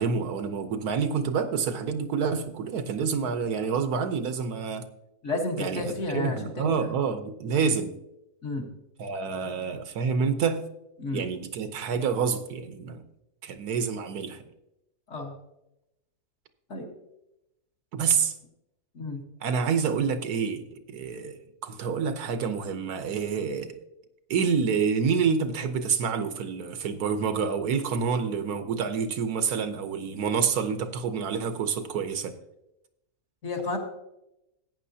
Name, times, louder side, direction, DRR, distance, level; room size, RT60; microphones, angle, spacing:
voice 1, 0.0-4.8 5.6-7.9 9.0-10.6 11.1-13.0 13.4-14.4 17.9-18.3 19.4-23.8 24.3-32.3, right 6 dB, 90° right, 9 dB, 1.4 m, -28 dB
voice 2, 5.2-6.7 8.4-8.6 11.0-11.2 15.1-15.3 16.7-16.9 18.9-19.2 33.4-33.8, left 2 dB, 50° left, 1 dB, 1.8 m, -31 dB
14.0 x 9.1 x 2.8 m, 0.87 s
omnidirectional pair, 1.6 m